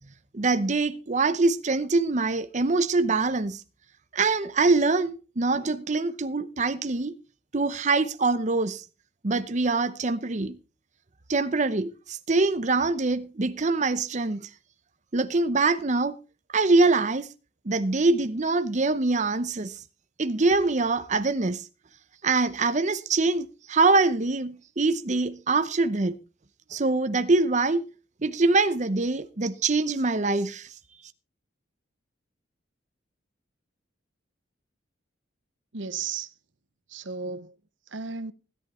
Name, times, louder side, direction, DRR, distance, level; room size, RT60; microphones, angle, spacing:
voice 1, 0.3-3.6 4.1-7.1 7.5-8.8 9.2-10.6 11.3-14.5 15.1-16.2 16.5-17.3 17.6-19.8 20.2-21.7 22.2-26.1 26.7-27.8 28.2-30.7, right 3 dB, 40° right, 0.7 m, -24 dB
voice 2, 35.7-36.3 36.9-37.6 37.9-38.3, right 5 dB, 70° right, 0.9 m, -34 dB
16.5 x 10.5 x 4.3 m
head